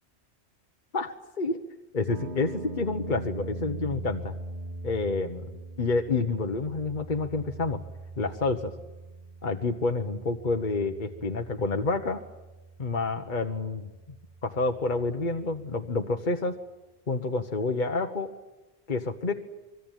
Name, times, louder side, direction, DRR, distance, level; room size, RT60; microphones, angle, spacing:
voice 1, 0.9-1.6 1.9-4.3 4.8-5.5 5.8-7.8 8.2-8.7 9.4-12.2 12.8-13.9 14.4-16.5 17.1-18.3 18.9-19.3, left 3 dB, 45° left, 4 dB, 1.4 m, -28 dB
sound 1, 2.1-16.1, right 2 dB, 75° right, 3.9 m, -42 dB
25.0 x 23.0 x 9.3 m, 1.1 s
omnidirectional pair, 1.1 m